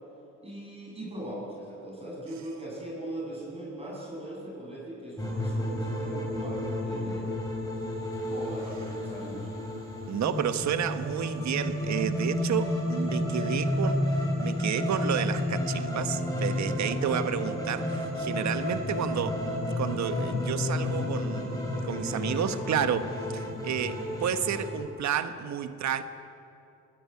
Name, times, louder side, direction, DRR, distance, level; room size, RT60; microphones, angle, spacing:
voice 1, 0.4-7.4 8.3-9.5, right 1 dB, 20° right, 7.9 m, -39 dB
sound 1, 5.2-24.7, left 1 dB, 10° left, 8.0 m, -31 dB
voice 2, 10.1-19.4 19.8-26.0, right 8 dB, 65° right, 1.3 m, -31 dB
22.5 x 17.0 x 9.5 m
cardioid pair, 90°, 30 cm